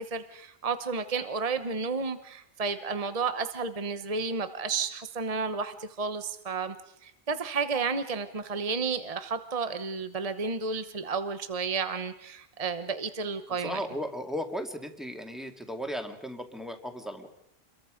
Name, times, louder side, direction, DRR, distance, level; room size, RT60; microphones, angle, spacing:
voice 1, 0.0-6.7 7.0-13.8, right 4 dB, 35° right, 10 dB, 1.1 m, -32 dB
voice 2, 13.5-17.3, equal, ahead, 4 dB, 2.3 m, -36 dB
29.0 x 22.5 x 5.1 m, 0.75 s
omnidirectional pair, 1.1 m